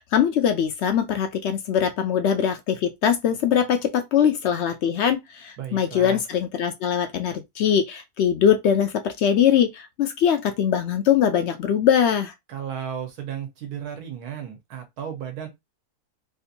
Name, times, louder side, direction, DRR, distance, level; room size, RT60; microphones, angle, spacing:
voice 1, 0.0-12.3, left 8 dB, 70° left, 0.6 m, -22 dB
voice 2, 5.6-6.2 12.5-15.5, right 8 dB, 80° right, 1.4 m, -34 dB
3.5 x 2.5 x 2.7 m
omnidirectional pair, 1.6 m